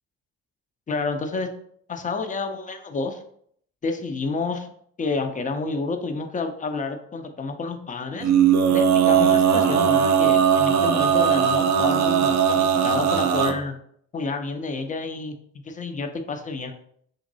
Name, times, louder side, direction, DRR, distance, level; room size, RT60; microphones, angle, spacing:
voice 1, 0.9-1.5 1.9-3.2 3.8-4.7 5.0-8.3 8.7-13.7 14.1-16.7, left 3 dB, 20° left, 7 dB, 0.4 m, -29 dB
Male singing, 8.2-13.5, right 8 dB, 35° right, 0.5 m, -19 dB
3.8 x 2.9 x 2.6 m, 0.65 s
hypercardioid pair, 45°, 49 cm